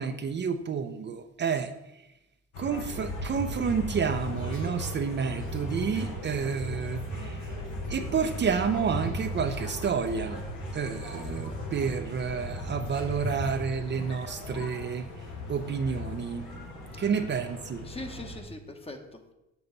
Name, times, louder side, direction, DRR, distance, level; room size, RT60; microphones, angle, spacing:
voice 1, 0.0-1.7 2.6-7.6 7.9-10.4 10.7-15.1 15.5-16.5 17.0-17.9, right 6 dB, 40° right, 7 dB, 0.6 m, -30 dB
sound 1, 2.5-18.4, equal, 80° left, 1.9 m, -37 dB
sound 2, 4.3-10.8 11.0-14.9 15.2-16.2, left 4 dB, 40° left, 2.4 m, -42 dB
voice 2, 17.8-19.3, left 2 dB, 20° left, 5 dB, 1.1 m, -41 dB
7.0 x 6.9 x 4.0 m, 0.90 s
cardioid pair, 90°, 29 cm